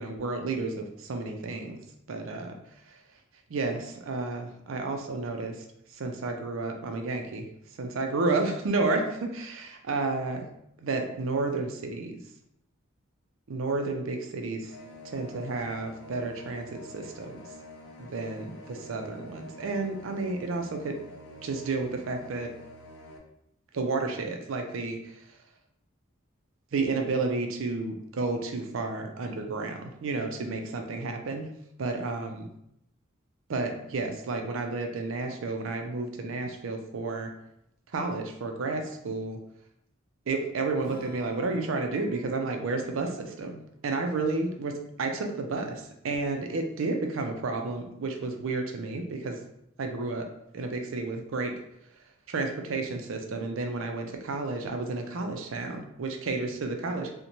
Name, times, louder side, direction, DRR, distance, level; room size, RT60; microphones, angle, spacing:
voice 1, 0.0-1.8 2.1-2.5 3.5-5.6 5.9-7.5 7.8-10.5 10.8-12.2 13.5-14.7 15.0-17.5 18.0-21.0 21.4-22.5 23.7-25.3 26.7-31.5 31.8-32.5 33.5-37.3 37.9-39.4 40.3-49.4 49.8-50.3 50.5-51.6 52.3-57.1, right 3 dB, 75° right, 4 dB, 0.4 m, -31 dB
sound 1, 14.6-23.2, left 1 dB, 60° left, 0.4 m, -47 dB
Acoustic guitar / Strum, 40.8-45.7, left 3 dB, 40° right, 0.9 m, -52 dB
2.6 x 2.1 x 2.9 m, 0.76 s
head